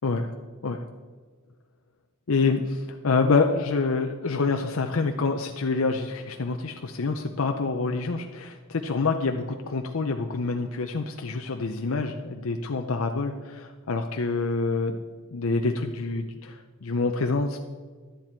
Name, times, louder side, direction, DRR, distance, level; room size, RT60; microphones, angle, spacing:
voice 1, 2.3-15.0 15.3-17.6, left 4 dB, 75° left, 4 dB, 0.6 m, -27 dB
11.5 x 9.8 x 4.5 m, 1.5 s
head